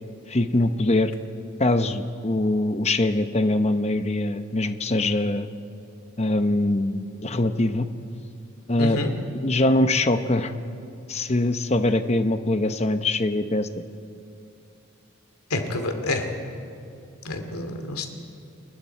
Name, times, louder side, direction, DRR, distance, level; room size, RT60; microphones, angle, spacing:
voice 1, 0.3-1.1 1.6-5.5 6.2-7.9 8.7-9.0 9.3-10.5 11.1-13.7, left 2 dB, 30° left, 9 dB, 0.8 m, -23 dB
voice 2, 8.8-9.1 15.5-16.3 17.2-18.1, left 2 dB, 90° left, 5 dB, 2.5 m, -28 dB
29.5 x 21.5 x 4.5 m, 2.7 s
head